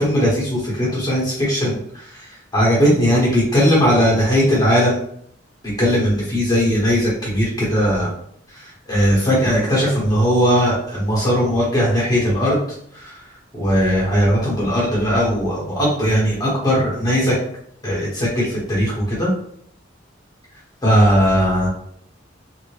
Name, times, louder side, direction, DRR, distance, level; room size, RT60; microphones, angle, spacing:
voice 1, 0.0-2.2 2.5-5.0 5.8-8.1 8.5-12.6 12.9-13.2 13.5-17.3 17.8-19.3 20.8-21.7, equal, 20° left, -5 dB, 1.2 m, -18 dB
2.7 x 2.5 x 3.2 m, 0.66 s
head